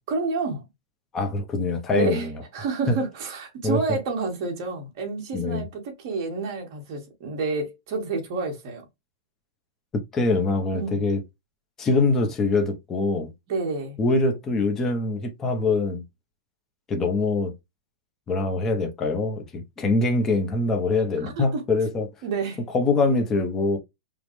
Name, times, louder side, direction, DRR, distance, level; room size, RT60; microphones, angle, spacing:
voice 1, 0.1-0.6 1.9-8.8 10.7-11.0 13.5-14.0 21.2-21.6 22.2-22.6, right 3 dB, 45° right, 1.9 m, -29 dB
voice 2, 1.1-2.3 2.9-3.0 3.6-3.8 5.3-5.6 10.1-11.2 11.8-13.3 14.0-16.0 16.9-17.5 18.3-22.1 22.7-23.8, left 3 dB, 15° left, 0.9 m, -23 dB
5.2 x 2.4 x 3.2 m
supercardioid pair, 160°, 2 cm